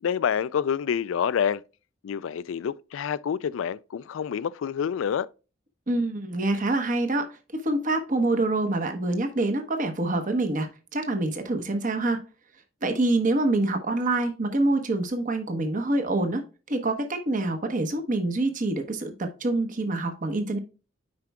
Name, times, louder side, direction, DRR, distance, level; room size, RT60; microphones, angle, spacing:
voice 1, 0.0-1.6 2.0-5.3, left 8 dB, 75° left, 0.3 m, -27 dB
voice 2, 5.9-12.2 12.8-20.6, right 2 dB, 45° right, 1.0 m, -26 dB
9.5 x 4.6 x 2.2 m
head